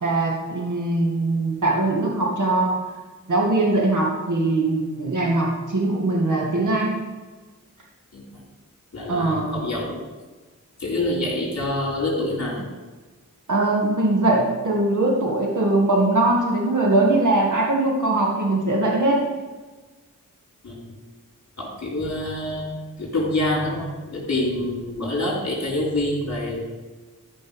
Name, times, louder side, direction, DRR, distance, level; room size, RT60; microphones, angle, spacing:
voice 1, 0.0-2.8 3.3-7.0 9.1-9.6 13.5-19.2, right 2 dB, 70° right, -1 dB, 2.0 m, -21 dB
voice 2, 8.1-8.4 8.9-10.0 10.8-12.6 20.6-21.0 21.6-26.7, left 1 dB, 55° left, -2 dB, 3.9 m, -26 dB
13.5 x 5.4 x 5.3 m, 1.3 s
wide cardioid pair, 75°, 32 cm